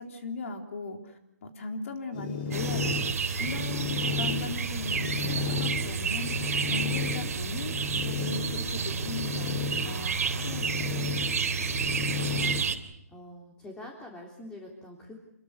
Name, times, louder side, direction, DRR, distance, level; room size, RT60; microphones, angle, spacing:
voice 1, 0.0-7.7 8.1-10.8, left 3 dB, 55° left, 4 dB, 3.8 m, -38 dB
sound 1, 2.1-12.6, left 6 dB, 35° left, 5.4 m, -34 dB
sound 2, 2.5-12.8, right 5 dB, 65° right, 3.4 m, -30 dB
voice 2, 13.1-15.1, left 1 dB, 10° left, 1 dB, 3.5 m, -45 dB
27.5 x 22.5 x 6.8 m, 0.85 s
hypercardioid pair, 155°, 9 cm